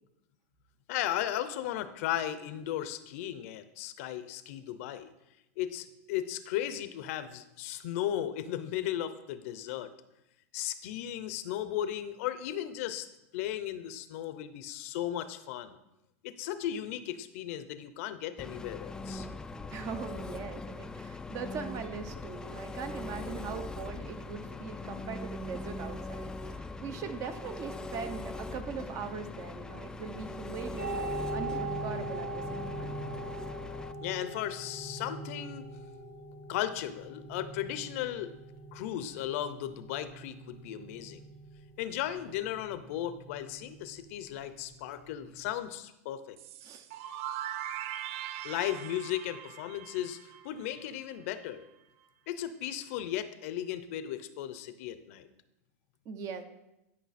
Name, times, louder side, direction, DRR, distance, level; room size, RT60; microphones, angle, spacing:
voice 1, 0.9-5.1 5.6-9.9 10.5-13.1 13.3-15.8 16.2-19.3 34.0-35.6 36.5-38.3 38.7-41.3 41.8-46.4 48.4-51.7 52.3-55.3, left 11 dB, 65° left, 12 dB, 0.6 m, -36 dB
Engine, 18.4-33.9, left 2 dB, 10° left, 0.3 m, -41 dB
voice 2, 19.7-33.0 46.6-46.9 56.0-56.4, right 6 dB, 40° right, 9 dB, 0.9 m, -41 dB
sound 1, 30.8-45.5, right 1 dB, 20° right, 1.1 m, -41 dB
sound 2, 46.4-51.1, right 11 dB, 65° right, 0.5 m, -41 dB
10.5 x 5.6 x 4.2 m, 0.91 s
supercardioid pair, 125°, 8 cm